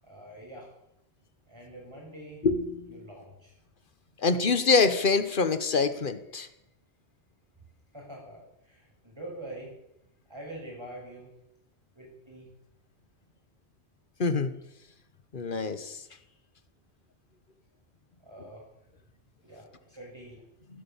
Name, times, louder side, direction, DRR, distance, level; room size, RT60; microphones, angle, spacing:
voice 1, 0.0-0.7 1.5-2.4 2.9-3.5 7.9-9.7 10.3-11.3 12.0-12.5 18.2-18.7 19.4-20.4, right 1 dB, 25° right, -2 dB, 7.0 m, -45 dB
voice 2, 2.4-2.9 4.2-6.5 14.2-14.5 15.3-16.0, left 4 dB, 50° left, 11 dB, 1.3 m, -25 dB
15.0 x 12.5 x 7.3 m, 0.84 s
omnidirectional pair, 1.2 m